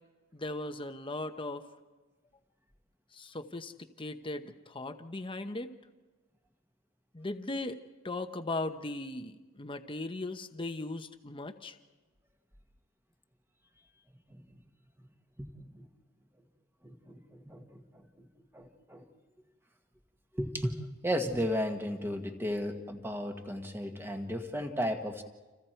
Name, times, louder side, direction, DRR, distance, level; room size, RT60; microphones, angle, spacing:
voice 1, 0.3-1.6 3.1-5.7 7.1-11.8, left 2 dB, 25° left, 8 dB, 1.0 m, -38 dB
voice 2, 15.4-15.9 16.8-18.3 18.5-19.1 20.3-20.8 21.0-25.2, equal, 10° right, 5 dB, 1.6 m, -35 dB
29.5 x 27.5 x 4.6 m, 1.2 s
head